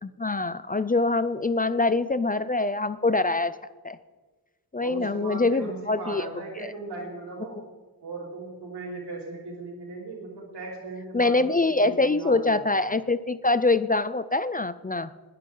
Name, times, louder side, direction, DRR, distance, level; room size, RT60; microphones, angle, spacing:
voice 1, 0.0-3.5 3.8-4.0 4.7-6.2 7.5-7.6 11.1-15.1, left 3 dB, 25° left, 14 dB, 0.4 m, -24 dB
voice 2, 4.8-7.6 8.0-12.6, right 3 dB, 85° right, -1 dB, 5.2 m, -37 dB
20.0 x 11.5 x 3.9 m, 1.3 s
wide cardioid pair, 165°, 39 cm